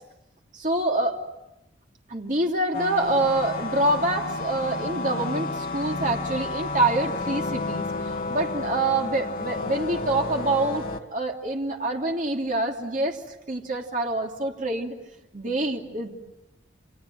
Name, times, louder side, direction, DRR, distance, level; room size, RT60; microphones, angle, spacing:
voice 1, 0.5-1.2 2.1-10.8 11.1-13.2 13.5-15.0 15.3-16.1, right 2 dB, 45° right, 1 dB, 3.1 m, -26 dB
sound 1, 2.7-11.0, left 2 dB, 50° left, 2.2 m, -31 dB
29.5 x 26.5 x 7.7 m, 0.92 s
head